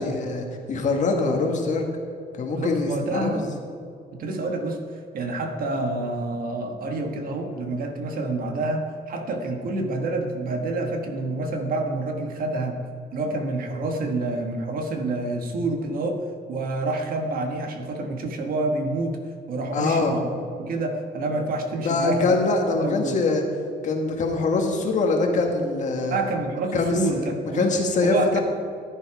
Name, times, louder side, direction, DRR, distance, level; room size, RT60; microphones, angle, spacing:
voice 1, 0.0-1.9 2.3-3.5 19.7-20.1 21.8-23.4 23.8-26.2 26.7-27.0 27.6-28.4, left 3 dB, 40° left, 2 dB, 1.8 m, -23 dB
voice 2, 2.5-3.5 4.1-4.8 5.1-12.8 13.1-19.2 19.5-20.3 20.6-22.3 22.8-23.2 26.1-27.7 28.0-28.4, right 2 dB, 50° right, 4 dB, 1.5 m, -28 dB
15.5 x 10.5 x 4.9 m, 2.4 s
cardioid pair, 180°, 18 cm